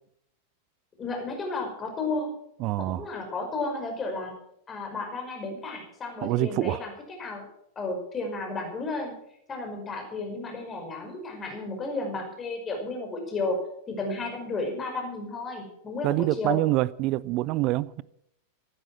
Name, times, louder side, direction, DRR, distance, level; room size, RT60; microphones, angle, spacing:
voice 1, 1.0-2.3 2.8-4.3 4.7-7.5 7.8-9.1 9.5-13.6 13.9-16.6, left 3 dB, 20° left, 5.3 m, -33 dB
voice 2, 2.6-3.0 6.2-6.8 16.0-18.0, right 18 dB, 40° right, 0.5 m, -26 dB
14.5 x 12.5 x 6.0 m
figure-of-eight pair, 90°, 0 cm